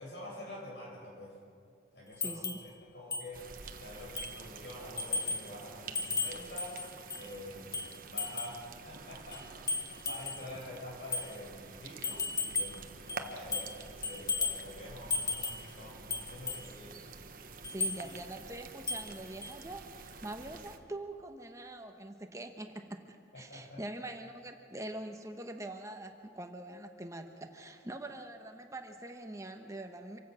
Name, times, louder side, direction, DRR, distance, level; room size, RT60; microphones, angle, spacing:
voice 1, 0.0-1.4 1.9-6.8 7.1-17.0 17.8-18.4 23.3-23.8, left 1 dB, 80° left, -2 dB, 7.5 m, -47 dB
sound 1, 2.2-2.7 3.1-3.3 3.6-3.7 4.2-4.4 5.0-5.5 5.9-7.3 7.7-8.6 9.3-10.5 11.1-11.3 12.0-12.8 13.1-13.8 14.0-14.6 15.1-15.7 16.1-16.7 17.6-18.0 18.9-19.1 19.4-19.5, left 4 dB, 20° left, 1.7 m, -35 dB
voice 2, 2.2-2.6 17.7-30.2, right 1 dB, 20° right, 5 dB, 1.1 m, -44 dB
sound 2, 3.3-20.8, right 4 dB, 55° right, 1.2 m, -49 dB
26.0 x 16.5 x 6.3 m, 2.3 s
head